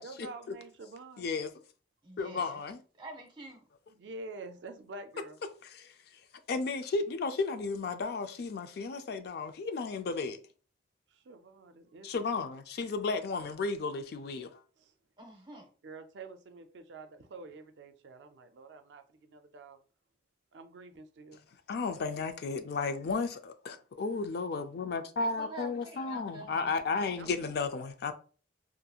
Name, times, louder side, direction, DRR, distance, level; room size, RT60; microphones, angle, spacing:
voice 1, 0.0-1.3 3.9-5.4 11.1-12.1 14.8-14.9 15.8-19.8 20.5-21.5 27.2-27.5, right 3 dB, 75° right, 0.4 m, -48 dB
voice 2, 1.2-1.5 2.2-2.8 5.7-5.9 6.5-10.4 12.0-14.5 21.7-28.1, left 4 dB, 60° left, 0.4 m, -33 dB
voice 3, 2.0-2.5 3.0-3.6 15.2-15.7 25.2-26.7 27.0-27.2, right 1 dB, 25° right, 0.7 m, -46 dB
2.8 x 2.5 x 2.3 m
head